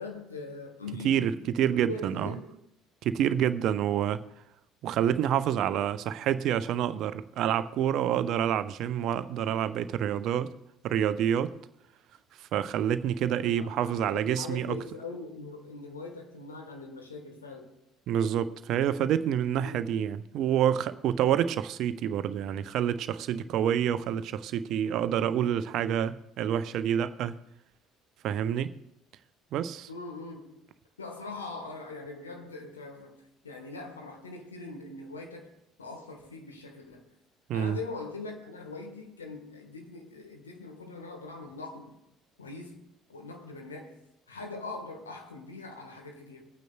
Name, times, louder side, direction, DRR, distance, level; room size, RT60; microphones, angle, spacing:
voice 1, 0.0-1.4 1.7-2.6 13.2-17.7 19.5-19.9 29.9-30.6 31.0-35.5 35.8-37.0 37.5-41.9 42.4-44.0 44.3-46.5, left 3 dB, 80° left, 1.3 m, -42 dB
voice 2, 1.0-2.3 3.0-4.2 4.8-10.5 10.8-11.5 12.5-14.8 18.1-27.4 28.2-28.7 29.5-29.9 37.5-37.8, right 10 dB, 55° right, 0.5 m, -28 dB
22.5 x 9.1 x 2.2 m
figure-of-eight pair, 55°, 0 cm